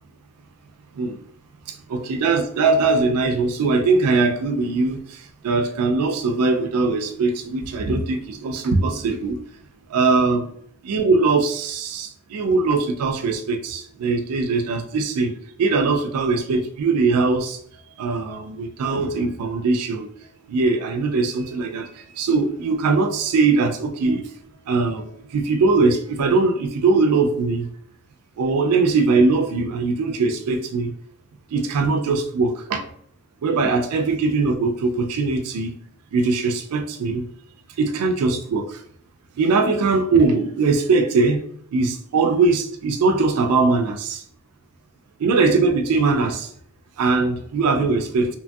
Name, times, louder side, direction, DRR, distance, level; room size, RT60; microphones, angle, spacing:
voice 1, 1.7-9.4 9.9-10.5 10.8-15.3 15.6-17.6 18.0-20.1 20.5-24.3 24.7-27.7 28.4-30.9 31.5-32.8 33.4-35.8 36.1-37.2 37.8-38.8 39.4-41.4 41.7-44.2 45.2-46.5 47.0-48.3, right 3 dB, 85° right, 0.3 m, -21 dB
2.8 x 2.5 x 2.3 m
head